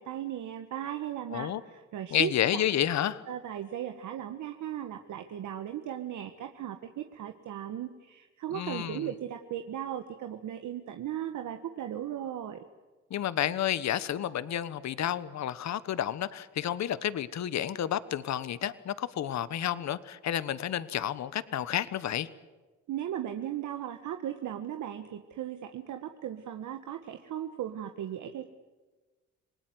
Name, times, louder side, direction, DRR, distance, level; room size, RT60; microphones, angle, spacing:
voice 1, 0.0-2.6 3.3-12.6 22.9-28.5, right 10 dB, 75° right, 6 dB, 1.6 m, -37 dB
voice 2, 2.1-3.2 8.5-9.1 13.1-22.3, left 10 dB, 65° left, 16 dB, 1.3 m, -30 dB
27.0 x 19.5 x 9.6 m, 1.3 s
cardioid pair, 90°, 30 cm